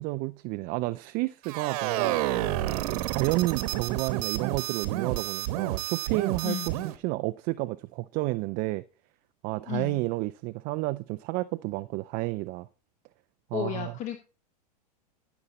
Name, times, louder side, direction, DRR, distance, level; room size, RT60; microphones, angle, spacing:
voice 1, 0.0-2.2 2.9-8.8 9.4-12.7 13.5-13.9, right 20 dB, 45° right, 0.5 m, -31 dB
sound 1, 1.4-7.0, right 13 dB, 60° right, 1.2 m, -30 dB
voice 2, 9.7-10.0 13.5-14.2, left 11 dB, 35° left, 1.2 m, -33 dB
13.5 x 7.1 x 4.1 m
hypercardioid pair, 110°, 21 cm